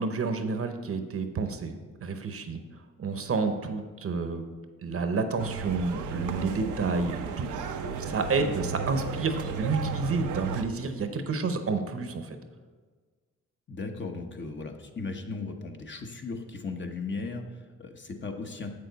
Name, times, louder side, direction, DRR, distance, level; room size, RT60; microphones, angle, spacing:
voice 1, 0.0-2.6 3.0-4.4 4.8-7.6 8.0-12.4, right 4 dB, 50° right, 8 dB, 0.8 m, -30 dB
sound 1, 5.4-10.6, right 6 dB, 85° right, 0.6 m, -34 dB
voice 2, 8.0-8.6 13.7-18.7, left 3 dB, 40° left, 4 dB, 1.0 m, -37 dB
7.4 x 6.7 x 4.1 m, 1.5 s
cardioid pair, 70°, 30 cm